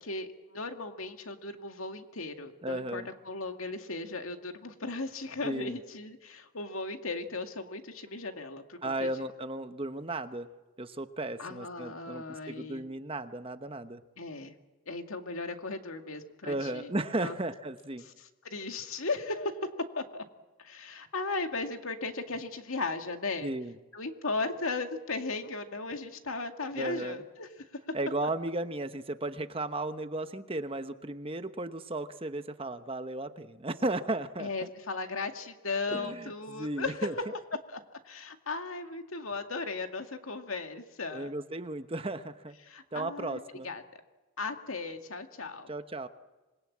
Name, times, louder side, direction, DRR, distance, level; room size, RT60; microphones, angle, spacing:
voice 1, 0.0-9.1 11.4-12.8 14.2-14.5 14.9-16.9 17.2-17.4 18.2-19.7 20.0-20.2 20.6-23.5 23.9-27.5 34.4-37.2 37.7-41.3 42.7-43.8 44.4-45.7, left 3 dB, 85° left, 5 dB, 2.2 m, -36 dB
voice 2, 2.6-3.1 5.4-5.8 8.8-10.5 10.8-14.0 16.4-18.1 23.4-23.7 26.8-27.2 27.9-34.7 35.9-37.1 41.1-42.6 42.9-43.7 45.7-46.1, right 2 dB, 25° right, 9 dB, 1.0 m, -35 dB
26.5 x 21.0 x 8.7 m, 1.1 s
head